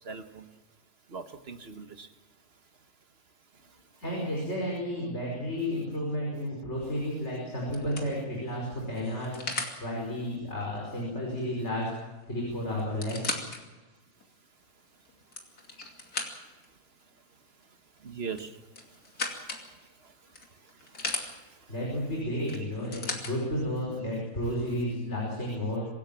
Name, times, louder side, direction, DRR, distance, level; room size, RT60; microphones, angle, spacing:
voice 1, 0.0-0.5 1.1-2.1 18.0-18.6 18.9-19.0 19.3-19.5 20.0-21.7, right 5 dB, 45° right, 7 dB, 1.6 m, -42 dB
voice 2, 4.0-9.4 9.8-11.9 12.3-13.4 21.7-25.9, equal, 45° left, -3 dB, 5.9 m, -32 dB
sound 1, 6.8-7.1 7.7-9.8 11.8-11.9 12.2-12.3 12.8-13.6 14.2-14.3 15.1-16.7 18.3-19.7 20.3-21.3 22.5-23.3 24.3-24.4, left 3 dB, 80° left, 3.2 m, -36 dB
26.0 x 16.0 x 7.3 m, 1.2 s
omnidirectional pair, 1.6 m